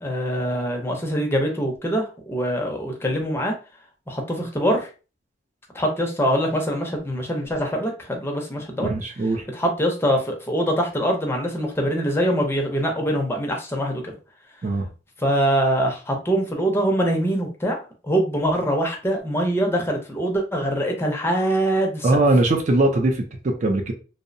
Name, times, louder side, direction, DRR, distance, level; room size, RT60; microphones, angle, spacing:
voice 1, 0.0-3.5 4.1-4.9 5.7-8.9 9.5-14.2 15.2-17.8 18.0-22.1, equal, 15° left, 1 dB, 0.5 m, -23 dB
voice 2, 8.8-9.5 14.6-14.9 22.0-23.9, right 2 dB, 40° right, 4 dB, 0.4 m, -20 dB
2.7 x 2.0 x 2.5 m, 0.33 s
head